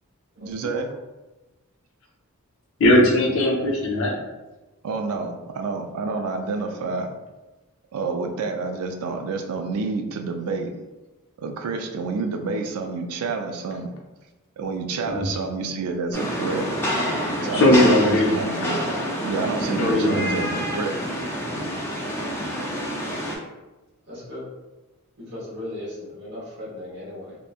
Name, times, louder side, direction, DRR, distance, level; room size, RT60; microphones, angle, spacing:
voice 1, 0.4-0.9 4.8-7.1 7.9-10.7 11.4-13.9 14.6-16.6 17.4-18.8 19.2-20.9, right 4 dB, 70° right, 4 dB, 0.3 m, -29 dB
voice 2, 2.8-4.2 15.1-15.3 17.5-18.3 19.8-20.4, left 1 dB, 60° left, -1 dB, 0.6 m, -18 dB
Rain, 16.1-23.4, equal, 10° left, 0.4 m, -27 dB
voice 3, 24.0-24.4 25.2-27.4, left 1 dB, 50° right, -7 dB, 0.9 m, -36 dB
2.9 x 2.1 x 2.3 m, 1.1 s
head